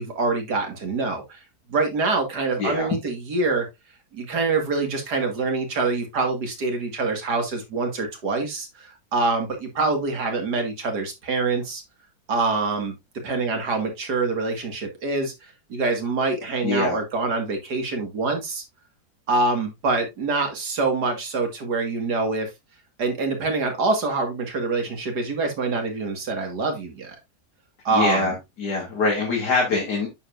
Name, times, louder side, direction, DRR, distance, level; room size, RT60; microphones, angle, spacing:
voice 1, 0.0-1.4 1.7-3.7 4.1-11.8 12.3-13.0 13.2-15.3 15.7-18.6 19.3-22.5 23.0-27.2 27.8-28.4, right 3 dB, 80° right, 2.6 m, -25 dB
voice 2, 2.6-2.9 16.6-17.0 27.9-30.1, left 3 dB, 80° left, 3.1 m, -24 dB
8.8 x 6.9 x 2.6 m
omnidirectional pair, 1.7 m